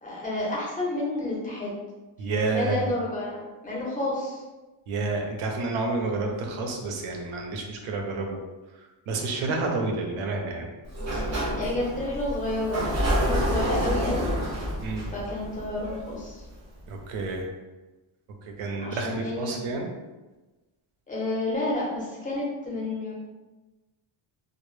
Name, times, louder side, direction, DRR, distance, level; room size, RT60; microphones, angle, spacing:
voice 1, 0.0-1.7 2.5-4.4 11.5-12.8 13.1-14.3 15.1-16.4 18.8-19.8 21.1-23.1, left 2 dB, 15° left, -5 dB, 0.5 m, -30 dB
voice 2, 2.2-2.9 4.9-8.4 9.1-10.7 14.8-15.0 16.9-17.5 18.5-19.9, right 3 dB, 75° right, 2 dB, 0.6 m, -29 dB
Sliding door, 10.9-16.5, equal, 35° right, 0.4 m, -28 dB
2.0 x 2.0 x 3.0 m, 1.2 s
wide cardioid pair, 175°, 49 cm